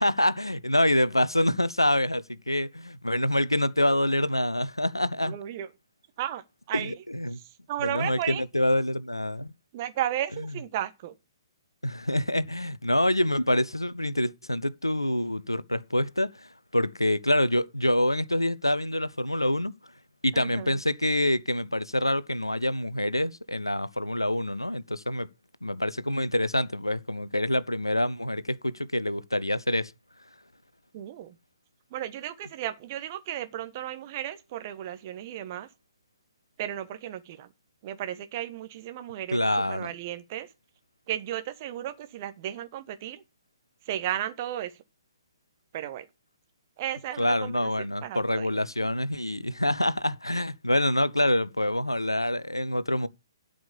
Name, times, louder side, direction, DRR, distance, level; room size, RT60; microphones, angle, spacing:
voice 1, 0.0-5.3 6.7-7.4 7.8-9.5 11.8-19.7 20.2-25.3 25.6-29.9 39.3-39.9 47.2-53.1, left 1 dB, 90° left, 0.8 m, -26 dB
voice 2, 5.2-5.7 6.2-6.9 7.7-8.4 9.7-11.1 20.3-20.8 30.9-31.4 31.9-35.7 36.6-37.5 37.8-40.5 41.1-43.2 43.8-44.7 45.7-46.0 46.8-47.7 48.0-48.5, right 11 dB, 35° right, 1.3 m, -34 dB
12.0 x 5.2 x 7.0 m
figure-of-eight pair, 125°, 2 cm